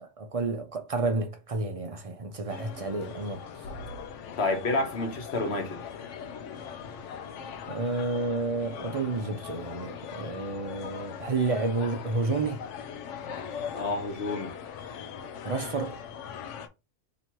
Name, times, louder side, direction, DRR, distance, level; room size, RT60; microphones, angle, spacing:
voice 1, 0.2-3.4 7.7-12.6 15.4-16.0, right 3 dB, 45° right, 0.4 m, -30 dB
sound 1, 2.5-16.7, left 7 dB, 80° left, 0.9 m, -40 dB
voice 2, 4.4-5.8 13.7-14.5, left 2 dB, 60° left, 1.2 m, -29 dB
3.0 x 2.8 x 4.4 m
omnidirectional pair, 1.2 m